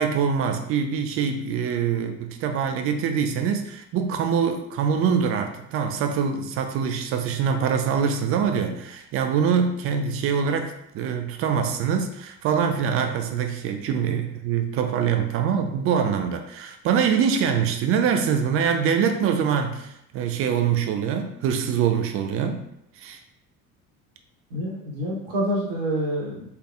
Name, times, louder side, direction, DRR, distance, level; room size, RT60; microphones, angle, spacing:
voice 1, 0.0-22.6 23.0-23.2, right 7 dB, 35° right, 6 dB, 0.4 m, -24 dB
voice 2, 24.5-26.5, equal, 65° right, -2 dB, 1.1 m, -27 dB
3.4 x 3.2 x 2.4 m, 0.78 s
figure-of-eight pair, 55°, 43 cm